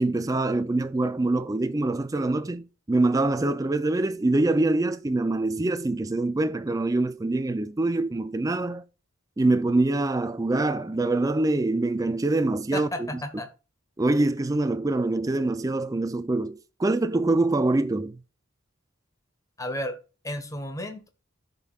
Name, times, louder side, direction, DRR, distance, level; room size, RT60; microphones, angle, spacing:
voice 1, 0.0-8.8 9.4-13.1 14.0-18.2, right 2 dB, 15° right, 0.4 m, -25 dB
voice 2, 12.7-13.5 19.6-20.0 20.2-21.1, left 1 dB, 15° left, 1.3 m, -33 dB
14.5 x 5.3 x 2.4 m
head